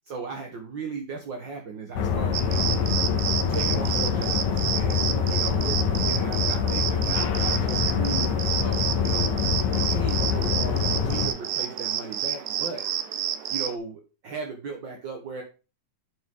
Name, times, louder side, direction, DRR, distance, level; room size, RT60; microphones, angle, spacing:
voice 1, 0.1-2.8 3.5-8.3 8.6-9.4 9.7-12.8 13.5-15.4, right 4 dB, 50° right, 3 dB, 1.5 m, -37 dB
sound 1, 2.0-11.3, left 6 dB, 80° left, 2.6 m, -25 dB
sound 2, 2.3-13.7, right 10 dB, 75° right, 2.3 m, -30 dB
11.5 x 6.1 x 3.8 m, 0.32 s
omnidirectional pair, 3.8 m